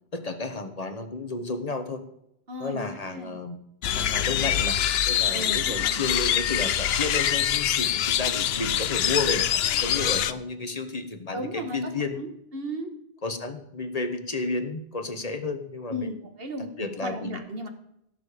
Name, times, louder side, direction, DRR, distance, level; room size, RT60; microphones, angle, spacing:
voice 1, 0.1-2.0 2.6-3.6 3.9-4.8 5.1-12.2 13.2-16.1 16.8-17.4, left 3 dB, 35° left, 8 dB, 1.2 m, -32 dB
voice 2, 2.5-3.4 5.3-6.1 11.3-12.9 15.9-17.7, equal, 60° right, 6 dB, 1.8 m, -35 dB
sound 1, 3.8-10.3, left 10 dB, 70° left, 0.8 m, -25 dB
16.5 x 6.9 x 5.1 m, 0.77 s
omnidirectional pair, 1.1 m